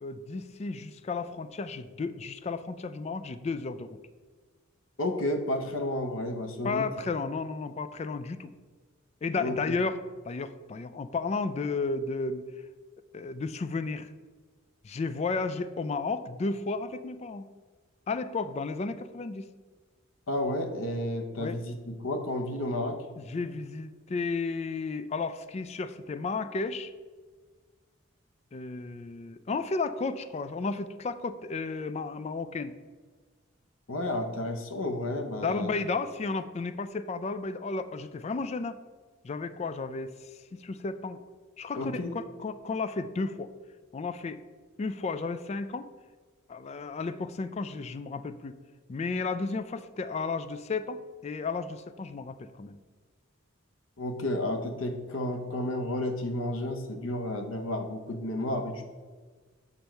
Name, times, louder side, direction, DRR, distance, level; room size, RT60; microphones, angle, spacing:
voice 1, 0.0-4.0 6.6-8.5 9.2-10.0 10.3-12.5 13.1-14.1 14.8-17.5 18.1-19.5 21.4-21.6 23.2-26.9 28.5-32.7 35.4-38.8 39.2-41.2 41.6-43.5 43.9-44.4 44.8-45.9 46.5-48.6 48.9-52.8, left 4 dB, 30° left, 12 dB, 0.3 m, -33 dB
voice 2, 5.0-6.9 9.4-9.5 20.3-23.0 33.9-35.7 41.8-42.1 54.0-58.9, left 1 dB, 80° left, 6 dB, 0.9 m, -31 dB
7.0 x 5.4 x 4.5 m, 1.4 s
head